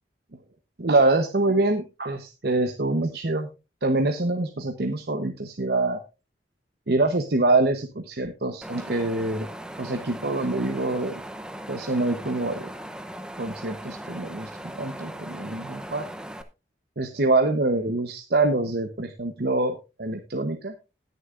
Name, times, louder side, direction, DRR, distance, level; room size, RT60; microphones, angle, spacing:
voice 1, 0.8-3.5 3.8-6.0 6.9-9.5 9.8-11.2 11.7-12.7 13.4-16.1 17.0-20.8, right 2 dB, 65° right, 6 dB, 0.9 m, -25 dB
Wind, 8.6-16.4, right 1 dB, 5° right, 0.7 m, -39 dB
20.0 x 6.8 x 2.5 m, 0.28 s
head